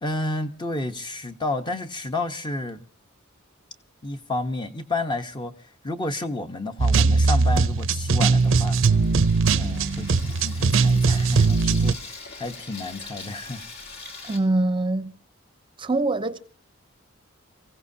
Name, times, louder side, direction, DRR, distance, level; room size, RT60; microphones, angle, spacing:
voice 1, 0.0-2.8 4.0-8.8 9.5-13.7, left 2 dB, 20° left, 1.0 m, -31 dB
sound 1, 6.8-11.9, right 4 dB, 65° right, 0.6 m, -20 dB
Water tap faucet / Sink (filling or washing), 7.9-14.4, left 3 dB, 50° left, 2.7 m, -42 dB
voice 2, 14.2-15.1 15.8-16.4, right 2 dB, 25° right, 0.7 m, -23 dB
29.0 x 16.0 x 2.8 m
head